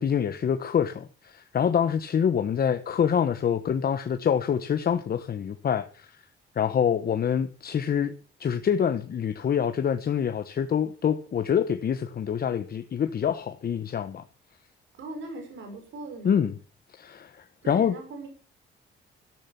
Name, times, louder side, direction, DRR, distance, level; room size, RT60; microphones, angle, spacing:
voice 1, 0.0-6.2 6.5-8.1 8.4-14.2 16.2-16.6 16.9-18.0, left 8 dB, 50° left, 1.2 m, -26 dB
voice 2, 14.9-16.4 17.6-18.3, right 2 dB, 70° right, 5.9 m, -39 dB
14.0 x 10.5 x 5.9 m
cardioid pair, 90°, 20 cm